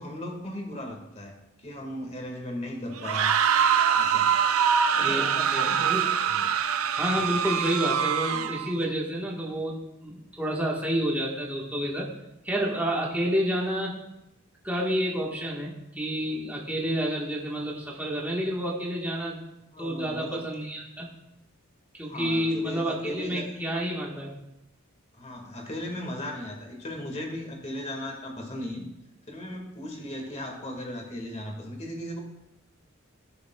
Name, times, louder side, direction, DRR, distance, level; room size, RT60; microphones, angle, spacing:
voice 1, 0.0-3.4 3.9-4.3 4.9-5.8 6.3-6.5 19.7-20.5 22.1-23.5 25.1-28.9 29.3-32.2, left 1 dB, 30° left, 2 dB, 1.8 m, -37 dB
sound 1, 3.0-8.7, right 7 dB, 80° right, 0.6 m, -24 dB
voice 2, 5.5-6.1 7.0-12.1 12.4-14.0 14.6-19.4 19.8-21.1 22.0-24.3, equal, 10° right, -3 dB, 1.4 m, -29 dB
17.0 x 6.9 x 2.3 m, 0.89 s
head